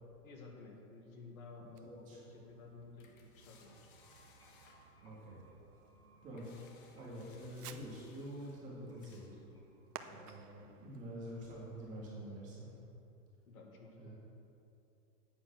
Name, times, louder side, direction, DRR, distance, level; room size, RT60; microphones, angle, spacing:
voice 1, 0.2-3.8 10.0-10.2 10.6-10.7 13.5-14.1, left 3 dB, 65° left, 1 dB, 2.0 m, -54 dB
sound 1, 0.6-11.1, left 5 dB, 35° left, 1.0 m, -68 dB
Fireworks, 1.7-12.4, right 8 dB, 85° right, 0.9 m, -58 dB
voice 2, 1.8-2.4 5.0-5.4 6.2-9.4 10.1-12.8 14.0-14.1, equal, 15° right, -6 dB, 2.0 m, -47 dB
sound 2, 3.8-10.6, right 1 dB, 10° left, 1.2 m, -68 dB
9.4 x 8.7 x 6.1 m, 2.7 s
supercardioid pair, 175°, 46 cm